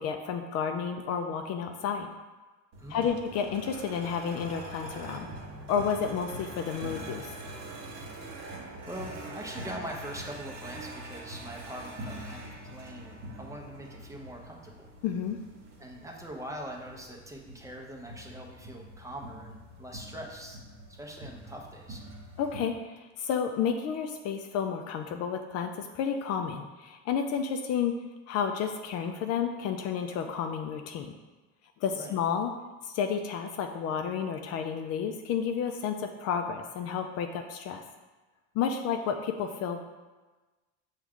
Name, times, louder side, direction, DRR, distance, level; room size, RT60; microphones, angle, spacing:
voice 1, 0.0-2.1 2.9-5.3 5.7-7.3 15.0-15.4 22.4-27.9 28.3-31.1 31.8-32.5 32.8-37.8 38.5-39.8, left 7 dB, 50° left, 5 dB, 0.4 m, -31 dB
sound 1, 2.7-22.6, right 1 dB, 50° right, 1.0 m, -44 dB
voice 2, 2.8-3.2 8.1-14.9 15.8-20.6 20.9-22.0 31.9-32.2, right 1 dB, 10° right, -1 dB, 0.6 m, -43 dB
6.0 x 2.4 x 3.5 m, 1.2 s
supercardioid pair, 110°, 33 cm